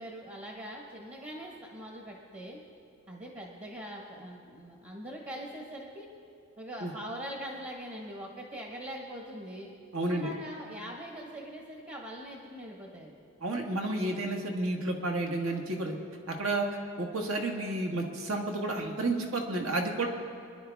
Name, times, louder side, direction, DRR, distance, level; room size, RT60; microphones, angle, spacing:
voice 1, 0.0-2.6 3.1-6.1 6.6-9.7 10.1-13.2, equal, 30° right, -1 dB, 1.3 m, -42 dB
voice 2, 9.9-10.3 13.4-15.9 16.3-16.7 17.0-20.1, right 2 dB, 65° right, 1 dB, 1.6 m, -31 dB
27.0 x 10.5 x 3.6 m, 2.4 s
head